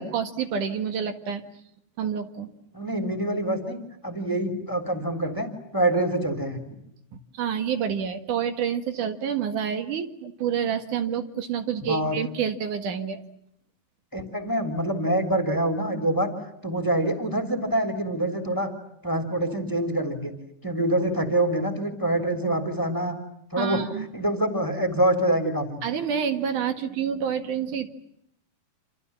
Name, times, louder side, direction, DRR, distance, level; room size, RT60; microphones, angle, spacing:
voice 1, 0.1-1.4 2.0-2.5 7.3-13.2 23.6-24.1 25.8-27.9, right 8 dB, 60° right, 8 dB, 3.0 m, -28 dB
voice 2, 2.7-3.8 4.0-6.6 11.8-12.2 14.1-16.3 16.6-18.7 19.0-20.3 20.6-23.2 23.5-23.8 24.1-25.8, right 1 dB, 5° left, 7 dB, 2.9 m, -25 dB
28.5 x 28.0 x 7.2 m, 0.73 s
omnidirectional pair, 4.4 m